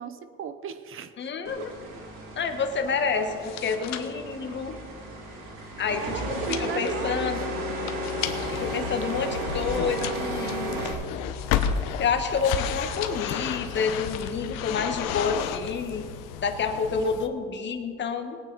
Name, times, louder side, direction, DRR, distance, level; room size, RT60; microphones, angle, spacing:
voice 1, 0.0-1.3 1.6-1.7 6.0-7.8 17.0-17.2, right 6 dB, 40° right, 11 dB, 0.9 m, -36 dB
voice 2, 1.2-1.7 2.4-4.7 5.8-7.5 8.5-10.9 12.0-16.1 16.4-18.4, left 5 dB, 35° left, 5 dB, 1.5 m, -29 dB
sound 1, 1.4-10.9, right 1 dB, 85° right, 2.6 m, -34 dB
sound 2, 3.2-8.7 9.0-12.1 12.6-13.5 13.8-14.5 14.7-15.1, left 11 dB, 60° left, 1.1 m, -40 dB
sound 3, 8.2-17.3, left 8 dB, 80° left, 1.0 m, -32 dB
20.0 x 9.0 x 4.1 m, 2.1 s
cardioid pair, 120°, 31 cm